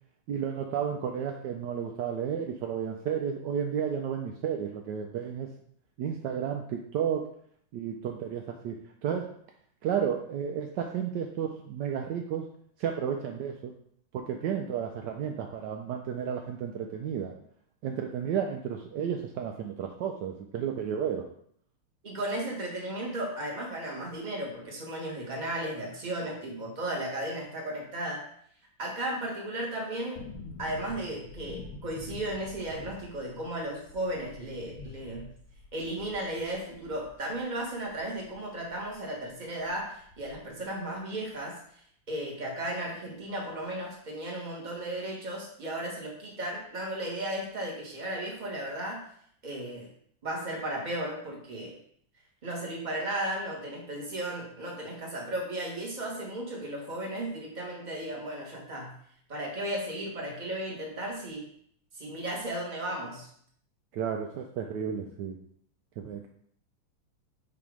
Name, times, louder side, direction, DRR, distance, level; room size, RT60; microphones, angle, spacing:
voice 1, 0.3-5.5 6.0-7.3 7.7-9.3 9.8-12.5 12.8-13.7 14.1-17.3 17.8-21.3 63.9-65.4 66.0-66.3, right 8 dB, 80° right, 2 dB, 0.9 m, -32 dB
voice 2, 22.0-28.2 28.8-30.2 30.6-35.3 35.7-49.0 49.4-49.9 50.2-51.8 52.4-59.0 59.3-61.5 61.9-63.3, right 1 dB, 25° right, -2 dB, 1.3 m, -35 dB
sound 1, 30.2-39.0 39.2-39.3 39.6-40.6 40.9-41.0, left 3 dB, 85° left, 1.7 m, -47 dB
7.1 x 2.9 x 4.8 m, 0.64 s
omnidirectional pair, 2.4 m